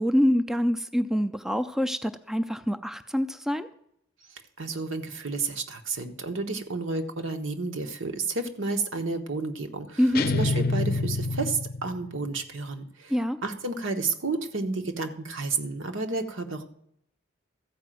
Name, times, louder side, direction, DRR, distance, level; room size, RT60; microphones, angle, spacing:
voice 1, 0.0-3.7 10.0-10.2 13.1-13.4, equal, ahead, 10 dB, 0.4 m, -25 dB
voice 2, 4.3-13.2 13.4-16.6, right 3 dB, 80° right, 5 dB, 1.2 m, -31 dB
sound 1, 10.1-12.2, left 3 dB, 50° left, 0.6 m, -27 dB
14.0 x 5.0 x 7.7 m, 0.72 s
head